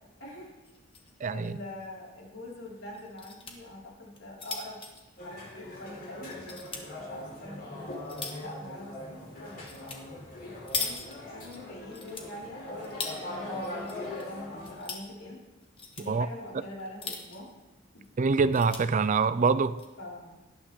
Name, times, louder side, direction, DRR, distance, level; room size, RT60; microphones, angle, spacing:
voice 1, 0.2-0.5 1.3-4.8 5.2-6.3 6.9-7.9 8.4-10.0 10.7-15.4 16.0-17.5 17.9-18.0 20.0-20.3, left 1 dB, 80° left, 4.9 m, -44 dB
sound 1, 0.6-1.1 1.4-1.5 1.8-1.9 2.9-3.5 4.1-5.9 6.3-6.8 7.5-8.5 9.7-10.0 10.3-11.6 11.9-13.2 13.6-14.2 14.5-15.1 15.6-16.1 16.8-17.5 18.0-18.1 18.3-18.8 19.5-19.9, left 4 dB, 25° left, 1.6 m, -39 dB
voice 2, 1.2-1.5 16.1-16.3 18.2-19.8, right 4 dB, 40° right, 0.4 m, -25 dB
sound 2, 5.2-14.8, left 1 dB, 45° left, 4.2 m, -41 dB
18.5 x 11.5 x 3.7 m
head